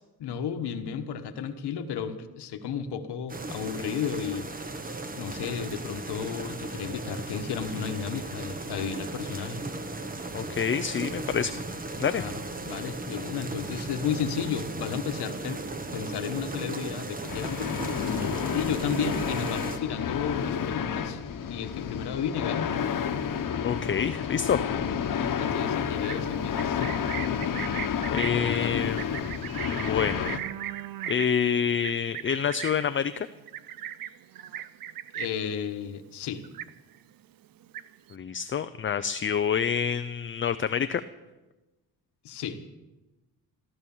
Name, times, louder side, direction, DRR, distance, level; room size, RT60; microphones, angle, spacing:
voice 1, 0.2-4.5 5.2-9.6 12.1-15.6 15.9-17.8 18.5-21.2 21.4-22.7 25.1-27.0 28.3-29.1 35.1-36.4 42.2-42.6, left 7 dB, 90° left, 8 dB, 1.4 m, -33 dB
sound 1, 3.3-19.8, right 2 dB, 20° right, 1.1 m, -36 dB
voice 2, 10.3-11.6 12.0-12.2 23.6-24.6 28.1-29.0 29.7-30.3 31.1-33.3 38.1-41.0, left 7 dB, 30° left, 10 dB, 0.5 m, -27 dB
sound 2, 17.3-30.4, left 7 dB, 55° left, 1.2 m, -30 dB
Livestock farm animals working animals, 25.9-35.5 35.9-36.2 36.4-37.1 37.4-38.1, right 11 dB, 60° right, 0.6 m, -38 dB
15.0 x 12.5 x 7.2 m, 1.1 s
cardioid pair, 120°, 39 cm